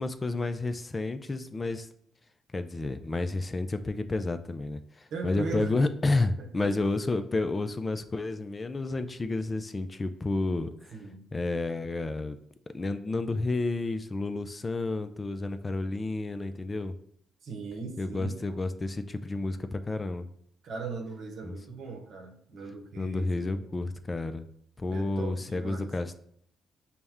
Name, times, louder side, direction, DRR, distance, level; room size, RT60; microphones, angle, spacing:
voice 1, 0.0-1.9 2.5-10.9 11.3-12.4 12.7-16.9 18.0-20.3 21.4-21.5 23.0-24.4 24.8-26.2, left 2 dB, 25° left, 9 dB, 0.3 m, -30 dB
voice 2, 5.1-5.8 6.4-6.8 10.9-11.2 17.4-18.4 20.6-23.7 24.9-25.9, right 4 dB, 65° right, 3 dB, 0.8 m, -39 dB
5.6 x 2.1 x 3.5 m, 0.67 s
cardioid pair, 90°, 0 cm